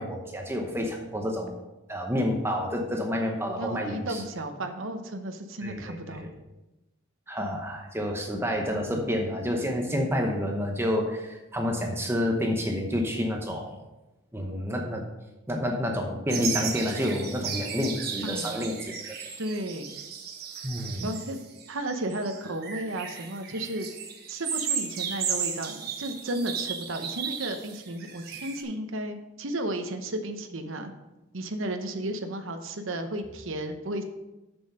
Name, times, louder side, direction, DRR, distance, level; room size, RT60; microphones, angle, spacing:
voice 1, 0.0-1.6 1.9-4.2 5.6-6.3 7.3-13.8 14.3-15.1 15.5-18.9 20.6-21.1, left 1 dB, 10° right, 2 dB, 0.8 m, -29 dB
voice 2, 3.6-6.3 8.9-9.0 18.2-18.7 19.4-19.9 21.0-21.4 21.7-23.9 24.3-30.9 31.3-34.0, right 1 dB, 80° right, 6 dB, 0.9 m, -33 dB
sound 1, 16.3-28.6, right 7 dB, 50° right, 1.2 m, -35 dB
7.1 x 6.9 x 5.5 m, 1.0 s
head